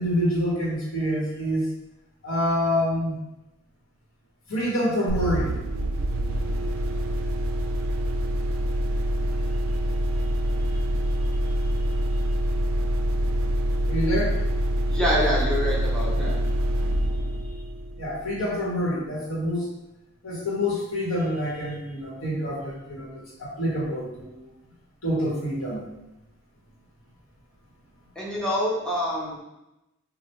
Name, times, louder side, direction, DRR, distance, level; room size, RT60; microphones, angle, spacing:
voice 1, 0.0-1.7 2.2-3.2 4.5-5.6 13.9-14.4 16.1-16.4 18.0-19.7 20.2-24.4 25.0-25.8, equal, 80° left, -5 dB, 1.0 m, -27 dB
engine medium, 5.1-18.6, right 1 dB, 75° right, 0.3 m, -25 dB
voice 2, 14.9-16.3 28.2-29.4, equal, 5° left, -7 dB, 0.5 m, -26 dB
3.2 x 2.1 x 2.9 m, 0.94 s
head